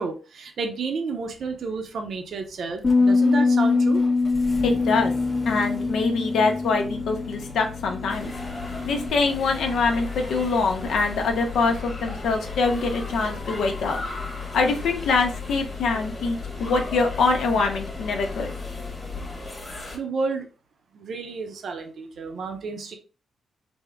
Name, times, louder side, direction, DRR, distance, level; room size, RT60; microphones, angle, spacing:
voice 1, 0.0-4.0 19.9-20.5 20.9-23.0, right 4 dB, 60° right, 5 dB, 0.5 m, -31 dB
Engine starting, 1.2-19.6, left 4 dB, ahead, 0.5 m, -38 dB
sound 1, 2.8-9.1, left 3 dB, 35° left, 0.8 m, -23 dB
voice 2, 4.6-5.1 5.4-8.3 8.8-14.0 14.5-18.5, left 4 dB, 90° left, 2 dB, 0.6 m, -24 dB
sound 2, 8.1-20.0, left 2 dB, 15° left, 1.2 m, -38 dB
3.5 x 2.0 x 3.3 m, 0.33 s
wide cardioid pair, 145°, 0 cm